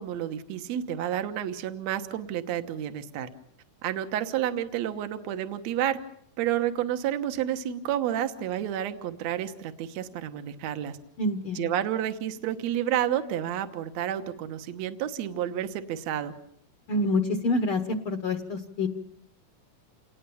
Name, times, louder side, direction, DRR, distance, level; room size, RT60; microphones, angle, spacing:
voice 1, 0.0-3.3 3.8-6.0 6.4-11.0 11.5-16.3, right 11 dB, 65° right, 8 dB, 2.3 m, -30 dB
voice 2, 11.2-11.7 16.9-18.9, left 2 dB, 55° left, 7 dB, 1.6 m, -27 dB
28.0 x 19.5 x 7.1 m, 0.69 s
omnidirectional pair, 3.7 m